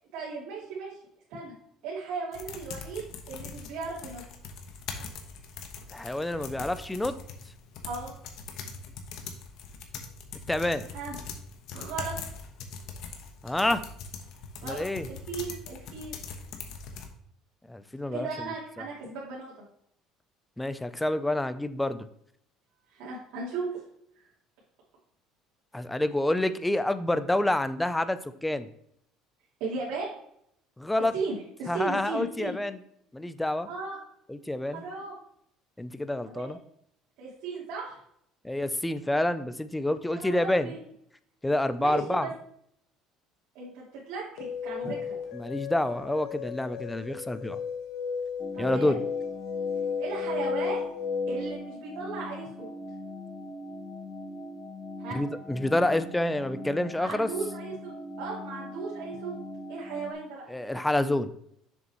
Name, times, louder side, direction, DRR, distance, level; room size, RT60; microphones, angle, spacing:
voice 1, 0.1-0.9 1.3-1.5 1.8-4.2 7.8-8.1 10.9-11.2 11.7-12.1 14.6-16.2 18.1-19.6 22.9-23.7 24.2-24.3 29.6-30.2 31.1-32.5 33.7-34.0 34.7-35.2 36.3-36.5 37.2-38.0 40.1-40.8 41.8-42.3 43.5-45.2 48.5-49.0 50.0-50.9 51.3-52.7 55.0-55.2 57.0-59.3 59.7-60.5, right 4 dB, 75° right, -8 dB, 2.8 m, -36 dB
sound 1, 2.3-17.1, left 5 dB, 65° left, 1.1 m, -42 dB
voice 2, 5.9-7.1 10.5-10.8 13.4-13.8 14.6-15.1 17.7-18.3 20.6-22.1 25.7-28.7 30.8-31.1 31.7-32.8 33.1-33.7 34.3-34.8 35.8-36.6 38.4-40.7 41.4-42.3 44.8-44.9 45.3-47.6 48.6-49.0 55.1-57.3 60.5-61.3, left 1 dB, 5° left, 12 dB, 0.4 m, -28 dB
sound 2, 44.4-51.5, left 6 dB, 85° left, 1.4 m, -34 dB
sound 3, 48.4-60.1, left 1 dB, 25° left, 1.2 m, -41 dB
7.0 x 6.6 x 3.0 m, 0.70 s
cardioid pair, 125°, 0 cm